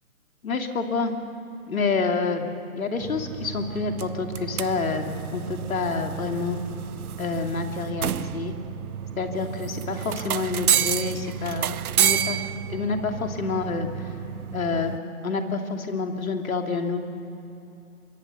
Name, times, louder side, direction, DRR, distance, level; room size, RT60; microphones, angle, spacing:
voice 1, 0.4-1.1 1.7-2.5 2.7-6.6 7.2-8.5 9.2-14.1 14.5-15.0 15.2-17.0, left 4 dB, 75° left, 4 dB, 2.7 m, -28 dB
sound 1, 3.0-15.0, right 10 dB, 90° right, 0.6 m, -30 dB
24.0 x 23.0 x 6.9 m, 2.9 s
hypercardioid pair, 135°, 42 cm